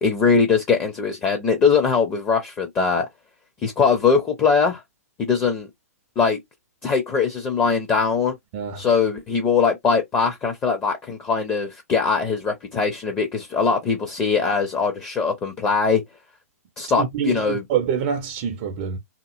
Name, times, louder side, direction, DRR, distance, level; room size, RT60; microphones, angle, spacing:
voice 1, 0.0-3.1 3.6-4.8 5.2-5.7 6.2-6.4 6.8-8.3 8.8-16.0 16.8-17.6, left 5 dB, 20° left, 0.5 m, -21 dB
voice 2, 8.5-8.8 17.0-19.0, right 8 dB, 35° right, 0.4 m, -26 dB
2.8 x 2.6 x 2.4 m
figure-of-eight pair, 115°, 8 cm